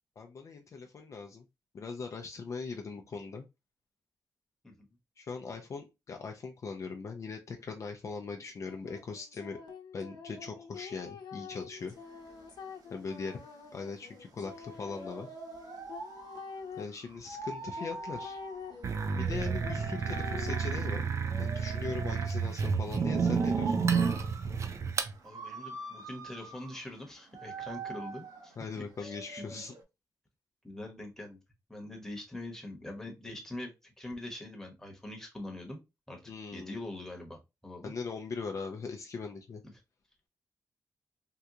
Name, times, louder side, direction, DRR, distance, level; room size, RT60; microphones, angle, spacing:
voice 1, 0.2-1.4 1.7-3.5 5.2-9.6 9.9-11.9 12.9-13.4 13.7-15.3 16.8-18.4 19.2-21.0 21.4-23.8 28.6-29.7 36.3-36.8 37.8-39.6, left 4 dB, 45° left, 0.5 m, -40 dB
sound 1, 8.7-16.8 17.8-20.6, left 5 dB, 80° left, 0.8 m, -46 dB
sound 2, 11.8-29.8, right 3 dB, 65° right, 1.0 m, -45 dB
sound 3, 18.8-25.1, right 5 dB, 45° right, 0.4 m, -30 dB
voice 2, 25.2-29.1 29.5-29.6 30.6-31.4 31.7-35.8 36.1-36.2 36.5-37.9, left 1 dB, 5° left, 1.1 m, -43 dB
3.7 x 2.3 x 2.8 m
wide cardioid pair, 125°, 7 cm